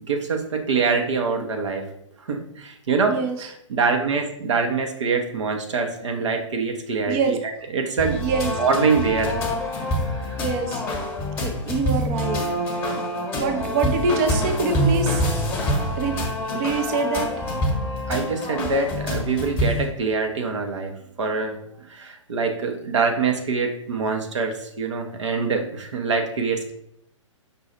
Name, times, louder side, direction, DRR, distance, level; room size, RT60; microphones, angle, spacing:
voice 1, 0.0-1.9 2.2-7.4 7.7-9.4 10.0-10.4 13.2-13.3 18.1-26.7, right 4 dB, 65° right, 3 dB, 0.7 m, -25 dB
voice 2, 7.1-7.4 8.2-8.5 10.4-10.8 11.4-12.4 13.3-15.2 15.9-16.1 16.5-17.3, right 4 dB, 30° right, 5 dB, 0.5 m, -24 dB
sound 1, 8.0-19.9, left 1 dB, 15° left, 1.0 m, -26 dB
5.3 x 2.3 x 4.3 m, 0.74 s
figure-of-eight pair, 120°, 16 cm